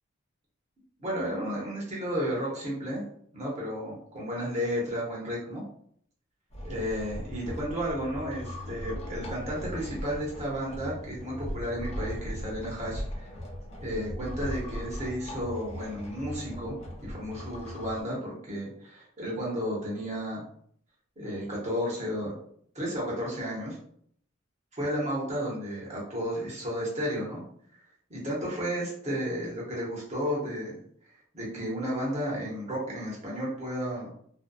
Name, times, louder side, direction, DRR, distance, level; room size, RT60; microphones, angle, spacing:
voice 1, 1.0-3.0 3.3-5.6 6.6-13.3 13.8-20.4 21.2-22.3 22.7-23.8 24.8-27.4 28.1-30.8 31.3-34.1, equal, 35° right, -4 dB, 0.8 m, -33 dB
sound 1, 6.5-18.0, equal, 30° left, 0.5 m, -38 dB
2.5 x 2.2 x 2.3 m, 0.63 s
head